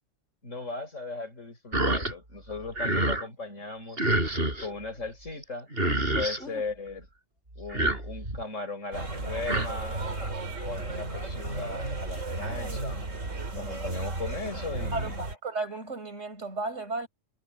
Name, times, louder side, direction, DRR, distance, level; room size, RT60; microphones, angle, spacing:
voice 1, 0.4-4.1 4.6-5.7 6.1-7.1 7.6-10.2 10.6-13.0 13.6-15.2, left 3 dB, 85° left, 6.3 m, -37 dB
sound 1, 1.7-2.1 2.5-3.3 4.0-4.7 5.4-5.5 5.7-6.4 7.6-8.4 9.2-9.7, right 1 dB, 50° right, 7.1 m, -27 dB
sound 2, 8.9-15.3, right 2 dB, 90° right, 3.5 m, -34 dB
voice 2, 14.9-17.1, right 3 dB, 70° right, 5.9 m, -34 dB
omnidirectional pair, 1.3 m